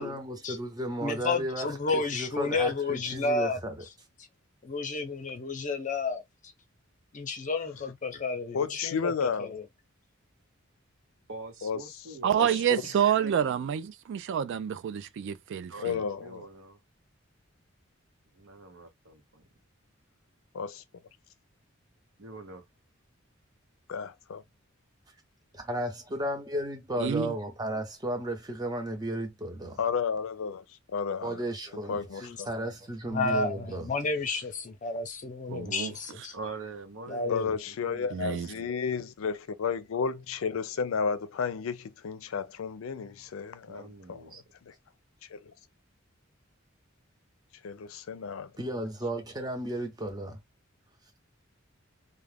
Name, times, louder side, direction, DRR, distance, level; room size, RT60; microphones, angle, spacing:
voice 1, 0.0-3.8 25.5-29.8 31.2-32.1 32.5-33.9 48.6-50.4, right 1 dB, 20° right, 0.8 m, -34 dB
voice 2, 1.0-3.6 4.6-6.2 7.1-9.1 9.4-9.6 32.2-32.4 33.1-36.3 37.1-37.5, left 3 dB, 40° left, 0.6 m, -31 dB
voice 3, 8.5-9.6 11.6-11.8 12.4-12.5 13.2-13.3 15.8-16.5 20.5-20.8 23.9-24.4 29.8-31.4 31.9-32.5 37.3-44.7 45.2-45.5 47.6-48.5, left 6 dB, 85° left, 0.4 m, -32 dB
voice 4, 11.3-13.3 15.7-16.8 18.3-19.4 22.2-22.6 36.3-38.7 43.6-44.4, right 3 dB, 90° right, 1.0 m, -44 dB
voice 5, 12.2-15.7 27.0-27.3 35.5-35.9 38.1-38.5, right 8 dB, 60° right, 0.3 m, -28 dB
2.4 x 2.2 x 3.3 m
head